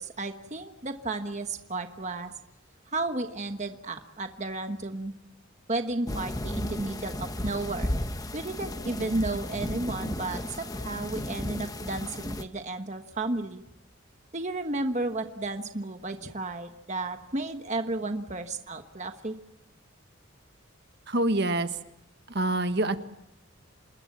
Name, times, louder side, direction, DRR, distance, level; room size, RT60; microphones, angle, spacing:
voice 1, 0.0-2.3 2.9-5.1 5.7-7.9 8.3-13.6 14.3-19.3, right 2 dB, 35° right, 6 dB, 1.3 m, -33 dB
sound 1, 6.1-12.4, left 1 dB, 15° left, 1.0 m, -34 dB
voice 2, 21.1-21.7 22.3-23.0, right 1 dB, 55° right, 8 dB, 1.4 m, -25 dB
27.5 x 21.0 x 7.4 m, 0.90 s
head